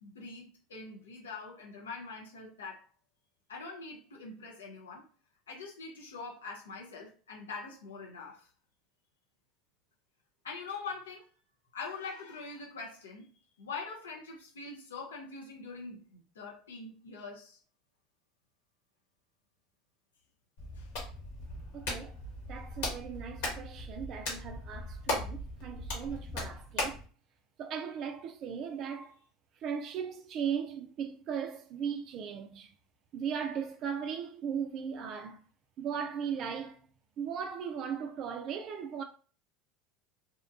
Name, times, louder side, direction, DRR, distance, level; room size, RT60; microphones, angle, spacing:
voice 1, 0.0-2.8 3.5-5.1 5.5-8.5 10.4-11.3 11.7-17.6 20.7-20.9, left 4 dB, 85° left, 0.5 m, -43 dB
Hands, 20.6-27.1, left 1 dB, 70° left, 1.2 m, -38 dB
voice 2, 21.7-22.2 22.5-27.0 27.6-29.1 29.6-32.7 33.1-35.4 35.8-36.8 37.2-39.0, right 7 dB, 50° right, 0.3 m, -37 dB
2.7 x 2.2 x 2.5 m
hypercardioid pair, 80°, 0 cm